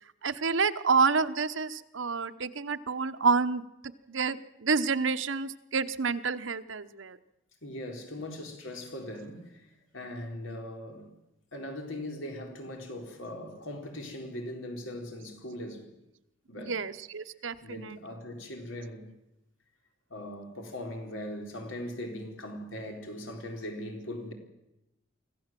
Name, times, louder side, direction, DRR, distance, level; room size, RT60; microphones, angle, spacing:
voice 1, 0.2-3.6 4.1-7.2 16.6-18.0, right 5 dB, 80° right, 1.0 m, -28 dB
voice 2, 7.6-9.7 9.9-11.1 11.5-15.9 16.5-16.8 17.6-19.1 20.1-24.3, left 1 dB, 90° left, 4.3 m, -40 dB
25.0 x 15.5 x 7.6 m
head